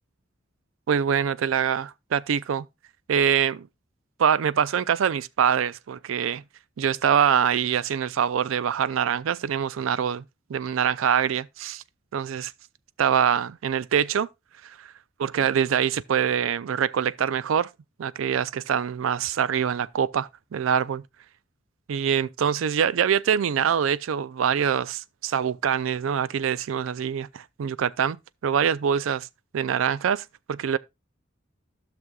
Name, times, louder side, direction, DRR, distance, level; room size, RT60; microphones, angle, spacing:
voice 1, 0.9-2.7 3.1-3.7 4.2-6.4 6.8-10.2 10.5-11.8 12.1-12.5 13.0-14.3 14.6-14.9 15.2-17.7 18.0-21.0 21.9-28.2 28.4-29.3 29.5-30.8, right 8 dB, 85° right, 0.4 m, -24 dB
15.0 x 6.1 x 2.3 m
head